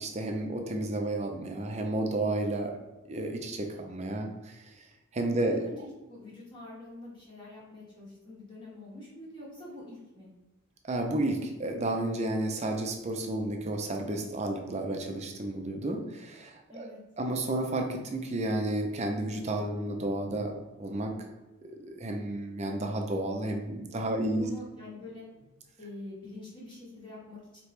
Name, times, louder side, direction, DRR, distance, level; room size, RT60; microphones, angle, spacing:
voice 1, 0.0-2.8 3.0-4.7 5.1-5.6 10.8-16.9 17.2-20.5 20.8-21.3 21.8-24.5, right 1 dB, 30° right, 3 dB, 0.5 m, -32 dB
voice 2, 5.3-10.3 16.7-17.0 24.2-25.2 25.8-27.6, left 2 dB, 20° left, -6 dB, 1.3 m, -45 dB
4.8 x 2.9 x 3.2 m, 1.1 s
head